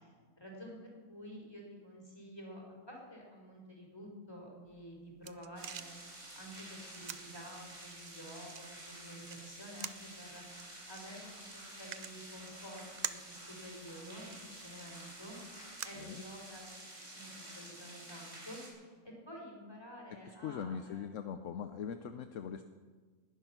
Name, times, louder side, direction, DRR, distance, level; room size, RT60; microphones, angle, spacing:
voice 1, 0.0-6.0 6.4-10.4 10.9-15.6 15.8-21.2, equal, 15° left, -1 dB, 4.2 m, -50 dB
sound 1, 4.7-16.8, right 8 dB, 80° right, 0.3 m, -49 dB
sound 2, 5.6-18.7, right 1 dB, 55° right, 4.4 m, -50 dB
voice 2, 20.1-22.6, left 7 dB, 65° left, 9 dB, 1.0 m, -41 dB
20.0 x 11.0 x 5.9 m, 1.5 s
omnidirectional pair, 1.5 m